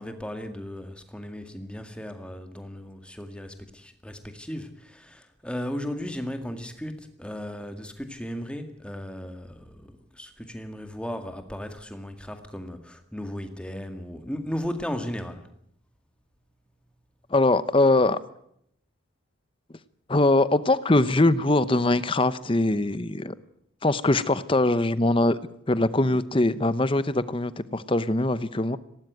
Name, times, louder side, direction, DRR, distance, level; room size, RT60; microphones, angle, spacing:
voice 1, 0.0-15.4, equal, 5° left, 6 dB, 1.9 m, -36 dB
voice 2, 17.3-18.2 20.1-23.3 23.8-25.4 25.7-28.8, left 2 dB, 25° left, 15 dB, 0.8 m, -22 dB
19.0 x 18.0 x 9.4 m, 0.73 s
head